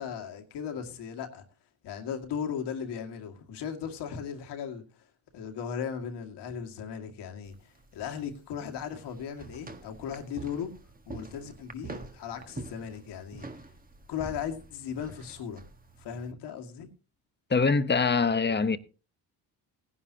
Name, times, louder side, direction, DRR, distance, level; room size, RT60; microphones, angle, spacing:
voice 1, 0.0-1.4 1.8-5.0 5.3-10.7 11.1-13.5 14.1-15.6 16.0-16.9, left 7 dB, 90° left, 2.2 m, -37 dB
sound 1, 7.4-16.3, right 3 dB, 20° right, 1.5 m, -46 dB
voice 2, 17.5-18.8, left 4 dB, 25° left, 1.0 m, -24 dB
18.5 x 11.0 x 2.9 m
cardioid pair, 90°, 40 cm